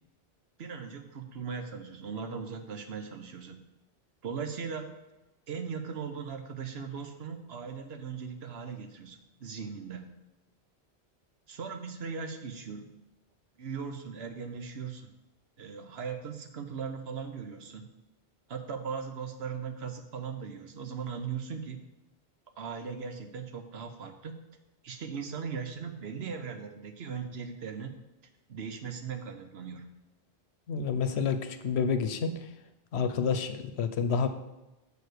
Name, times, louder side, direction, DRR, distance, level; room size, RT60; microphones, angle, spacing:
voice 1, 0.6-3.6 4.2-4.9 5.5-10.1 11.5-12.9 13.6-15.1 15.6-17.9 18.5-21.8 22.6-24.4 24.8-27.9 28.5-29.9, right 6 dB, 75° right, 7 dB, 1.1 m, -38 dB
voice 2, 30.7-32.5 32.9-34.3, left 6 dB, 90° left, 9 dB, 1.0 m, -29 dB
6.9 x 4.7 x 6.6 m, 1.0 s
omnidirectional pair, 1.1 m